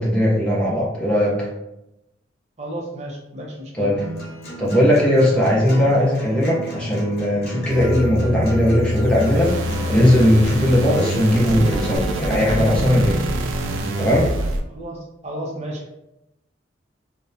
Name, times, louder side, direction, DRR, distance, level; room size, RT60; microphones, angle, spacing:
voice 1, 0.0-1.5 3.7-4.0 4.6-13.2 14.0-14.3, equal, 5° left, -6 dB, 0.6 m, -18 dB
voice 2, 2.6-3.9 14.7-15.9, right 1 dB, 35° right, -1 dB, 0.5 m, -33 dB
Acoustic guitar, 4.0-12.0, right 1 dB, 55° left, 0.8 m, -34 dB
sound 1, 7.7-14.6, equal, 90° right, 0.3 m, -25 dB
2.7 x 2.1 x 2.3 m, 0.88 s
head